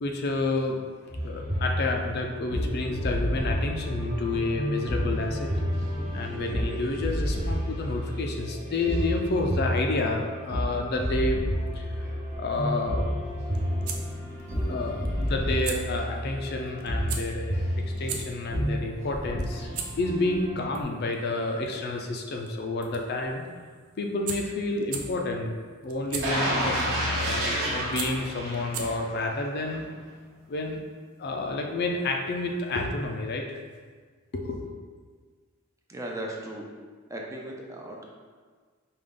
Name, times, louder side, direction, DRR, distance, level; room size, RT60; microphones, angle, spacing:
voice 1, 0.0-0.8 1.2-5.5 6.1-11.4 11.7-12.1 12.4-13.0 14.7-19.7 20.0-23.4 24.0-29.8 30.5-30.8 31.2-33.6 34.3-34.8, left 2 dB, 50° left, 2 dB, 0.4 m, -30 dB
sound 1, 1.1-20.8, equal, 35° right, 0.9 m, -30 dB
sound 2, 13.3-29.2, right 6 dB, 85° right, 0.5 m, -40 dB
sound 3, 26.2-29.2 29.6-29.7, right 1 dB, 65° right, 1.0 m, -29 dB
voice 2, 35.9-36.7 37.1-38.0, right 1 dB, 15° right, -1 dB, 0.4 m, -37 dB
5.0 x 2.3 x 3.7 m, 1.5 s
head